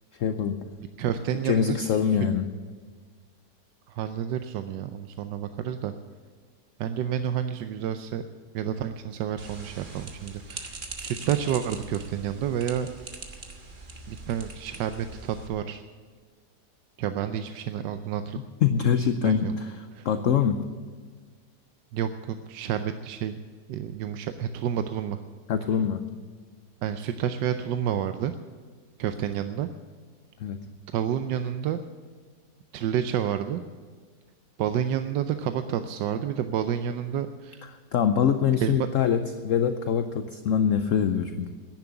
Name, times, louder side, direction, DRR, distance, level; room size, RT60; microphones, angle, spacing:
voice 1, 0.2-0.6 1.4-2.5 18.6-19.8 20.0-20.7 25.5-26.2 30.4-30.7 37.9-41.5, left 7 dB, 65° left, 9 dB, 0.9 m, -24 dB
voice 2, 1.0-1.8 3.9-5.9 6.8-8.2 8.5-12.9 14.1-15.8 17.0-18.4 19.2-19.5 19.9-20.1 21.9-23.4 23.7-25.2 26.8-28.3 29.0-29.7 30.9-31.8 32.7-33.6 34.6-37.6 38.6-38.9, right 9 dB, 85° right, 9 dB, 1.3 m, -29 dB
sound 1, 9.4-15.5, right 3 dB, 30° right, 1.4 m, -42 dB
10.5 x 10.5 x 8.7 m, 1.5 s
omnidirectional pair, 1.8 m